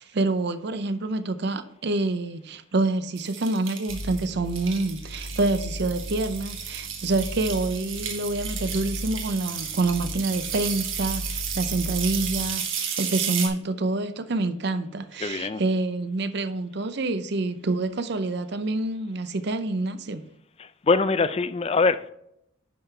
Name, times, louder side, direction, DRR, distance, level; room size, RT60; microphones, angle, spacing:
voice 1, 0.0-20.3, right 2 dB, 55° right, 0.6 m, -27 dB
sound 1, 3.2-13.5, right 8 dB, 75° right, 1.4 m, -33 dB
sound 2, 3.9-12.6, left 1 dB, 65° left, 1.0 m, -37 dB
voice 2, 15.2-15.6 20.6-22.1, left 4 dB, 30° left, 0.4 m, -23 dB
10.5 x 5.7 x 3.3 m
head